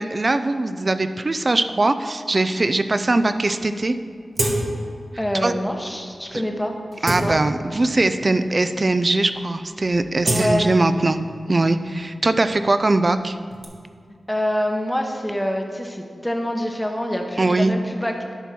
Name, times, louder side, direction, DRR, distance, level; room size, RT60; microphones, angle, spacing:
voice 1, 0.0-3.9 5.4-5.5 6.3-6.4 7.0-11.2 11.5-13.4 17.4-17.7, right 2 dB, 40° right, 10 dB, 0.4 m, -21 dB
sound 1, 3.3-3.4 3.6-3.7 4.3-5.0 5.4-5.6 6.2-6.3 6.8-7.9 8.6-8.7 9.0-9.3 9.6-11.4 11.7-13.6, right 1 dB, 60° right, 1.4 m, -28 dB
voice 2, 5.2-7.4 10.2-10.7 14.3-18.3, equal, 5° left, 2 dB, 0.9 m, -26 dB
10.5 x 4.4 x 6.1 m, 2.1 s
wide cardioid pair, 80°, 0 cm